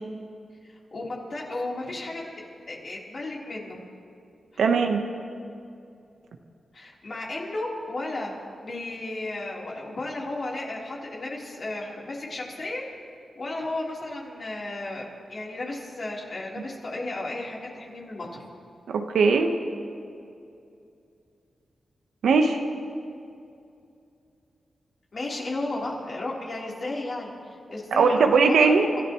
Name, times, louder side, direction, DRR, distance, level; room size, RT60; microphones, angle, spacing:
voice 1, 0.9-2.2 2.7-3.8 6.7-8.4 8.6-12.8 13.4-18.3 25.1-29.0, left 2 dB, 55° left, -4 dB, 3.8 m, -34 dB
voice 2, 4.6-5.0 18.9-19.5 22.2-22.6 27.9-28.9, right 4 dB, 85° right, 4 dB, 1.1 m, -19 dB
30.0 x 13.5 x 3.2 m, 2.5 s
cardioid pair, 55°, 0 cm